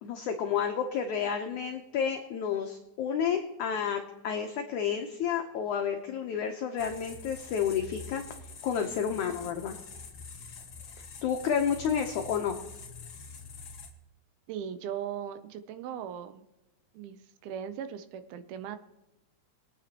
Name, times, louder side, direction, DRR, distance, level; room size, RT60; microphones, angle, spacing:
voice 1, 0.0-8.2 8.6-9.8 11.2-12.6, left 7 dB, 85° left, 4 dB, 1.7 m, -30 dB
sound 1, 6.8-13.9, left 5 dB, 60° left, 1.3 m, -46 dB
voice 2, 14.5-16.4 16.9-18.8, right 9 dB, 80° right, 11 dB, 2.5 m, -38 dB
22.0 x 9.2 x 2.9 m, 0.96 s
omnidirectional pair, 4.5 m